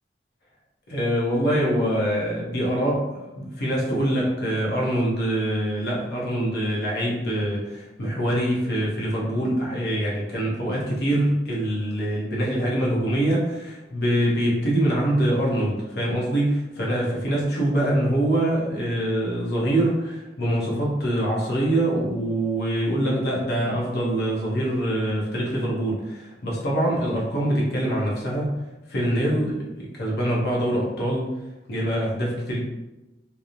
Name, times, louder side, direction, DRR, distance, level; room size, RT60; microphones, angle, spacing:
voice 1, 0.9-28.6 28.9-31.4 31.7-32.6, right 1 dB, 65° left, -4 dB, 0.7 m, -24 dB
2.9 x 2.0 x 2.4 m, 1.0 s
head